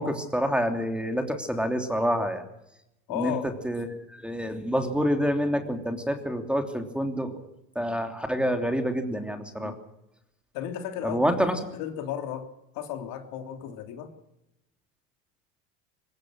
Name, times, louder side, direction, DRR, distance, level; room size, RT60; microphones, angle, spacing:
voice 1, 0.0-2.4 3.1-3.3 3.6-7.5 7.7-9.7 11.0-11.5, equal, 5° right, 5 dB, 3.2 m, -27 dB
voice 2, 3.1-3.6 9.6-9.7 10.5-11.2 11.7-12.5 12.7-14.1, left 10 dB, 60° left, 5 dB, 3.3 m, -34 dB
22.5 x 20.5 x 6.5 m, 0.86 s
hypercardioid pair, 85°, 39 cm